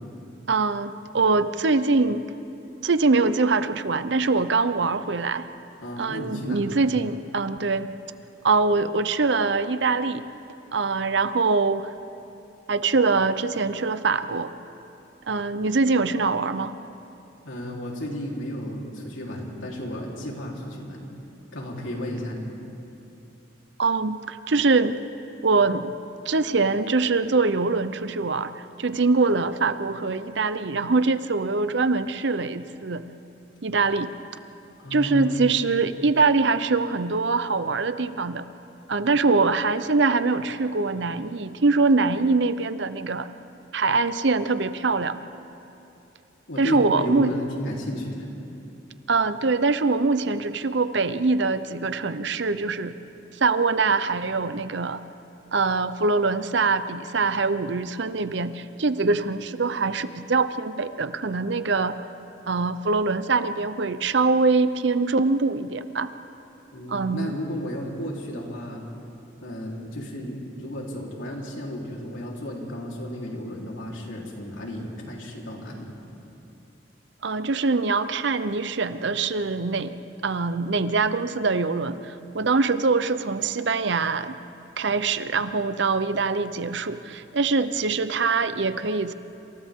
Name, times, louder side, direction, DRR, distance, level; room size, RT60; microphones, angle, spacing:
voice 1, 0.5-2.3 2.8-5.5 6.0-7.9 8.4-10.3 10.7-11.9 12.7-14.5 15.3-16.7 23.8-25.0 25.4-25.9 26.3-33.0 33.6-34.1 34.9-38.4 38.9-43.3 43.7-45.2 46.6-47.3 49.1-52.9 53.3-55.0 55.5-62.0 62.5-66.1 66.9-67.3 77.2-79.9 80.2-84.4 84.8-89.1, right 4 dB, 65° right, 12 dB, 0.7 m, -23 dB
voice 2, 5.8-6.9 17.5-21.1 21.5-22.6 34.8-35.4 46.5-48.3 66.7-68.9 69.4-76.0, equal, 85° left, -2 dB, 3.7 m, -33 dB
28.0 x 27.5 x 3.7 m, 2.8 s
head